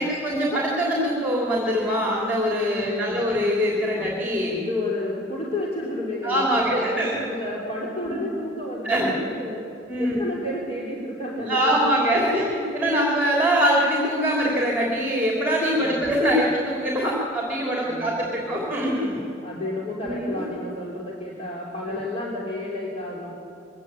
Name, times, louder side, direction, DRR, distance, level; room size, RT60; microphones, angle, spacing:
voice 1, 0.0-4.6 6.2-7.1 8.0-8.1 8.8-9.1 9.9-10.2 11.4-19.2 20.0-20.4 21.9-22.0, equal, 10° right, -2 dB, 3.0 m, -23 dB
voice 2, 2.7-3.2 3.9-4.1 4.5-9.7 10.0-12.7 15.7-16.1 17.8-18.7 19.4-23.3, left 1 dB, 35° left, -4 dB, 3.1 m, -31 dB
22.0 x 16.5 x 8.9 m, 2.6 s
head